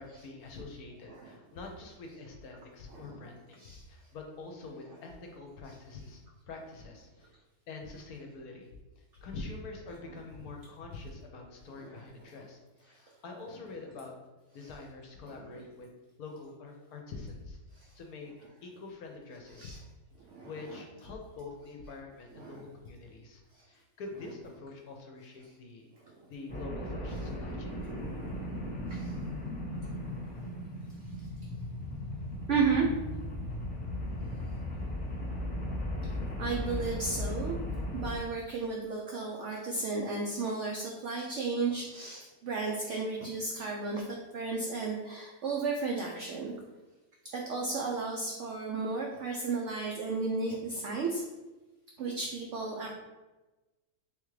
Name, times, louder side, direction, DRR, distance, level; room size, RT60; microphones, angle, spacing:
voice 1, 0.0-7.3 7.7-8.7 9.0-14.1 14.5-17.6 17.9-18.3 18.6-19.8 20.4-23.4 23.7-25.9 26.3-27.8, left 3 dB, 70° left, 2 dB, 1.0 m, -45 dB
voice 2, 1.1-1.4 2.9-3.2 3.6-3.8 4.9-5.0 5.7-5.8 11.7-12.4 14.6-14.8 15.2-15.5 17.8-17.9 19.5-19.8 20.3-21.1 22.3-22.7 24.1-24.3 26.0-26.2 27.1-27.2 27.8-28.1 28.9-29.1 29.9-30.0 30.4-30.5 32.5-32.8 36.4-37.6 37.9-46.5 47.3-51.2 52.0-53.0, right 4 dB, 75° right, -1 dB, 0.6 m, -34 dB
sound 1, 26.5-38.2, left 1 dB, 5° left, 0.7 m, -37 dB
3.5 x 3.5 x 3.2 m, 1.1 s
omnidirectional pair, 1.8 m